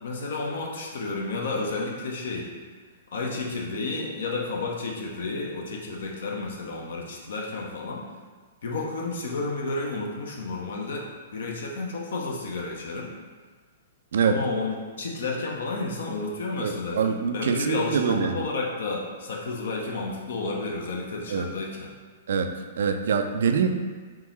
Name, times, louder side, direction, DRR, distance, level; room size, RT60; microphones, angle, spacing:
voice 1, 0.0-2.5 3.1-8.0 8.6-11.1 11.3-13.1 14.2-21.9, left 3 dB, 60° left, -1 dB, 0.6 m, -31 dB
voice 2, 16.6-18.4 21.3-21.5 22.3-22.5 22.8-23.7, right 6 dB, 60° right, 6 dB, 0.3 m, -24 dB
3.6 x 3.0 x 3.0 m, 1.4 s
figure-of-eight pair, 110°, 0 cm